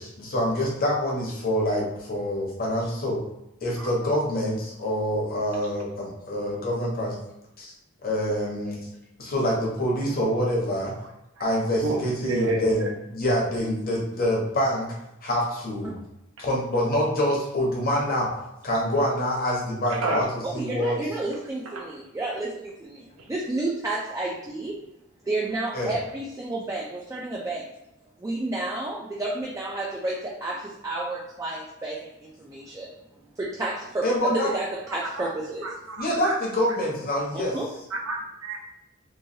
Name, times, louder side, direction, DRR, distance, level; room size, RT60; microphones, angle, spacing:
voice 1, 0.0-3.2 3.6-7.2 7.6-7.7 8.0-8.8 9.2-10.9 11.4-12.8 13.1-14.9 15.2-16.0 16.4-18.3 18.6-20.2 20.5-21.0 25.7-25.9 34.0-34.5 36.0-37.6, equal, 45° left, -3 dB, 0.9 m, -26 dB
voice 2, 11.8-12.9 16.4-16.5 19.9-20.3 21.7-22.0 23.2-23.3 34.9-35.3 35.6-36.4 36.7-36.8 37.5-38.6, right 2 dB, 85° right, 1 dB, 0.6 m, -31 dB
voice 3, 20.4-24.8 25.3-27.7 28.2-32.9 33.4-35.7 37.5-37.7, right 2 dB, 15° right, -3 dB, 0.3 m, -31 dB
3.0 x 2.2 x 2.6 m, 0.87 s
head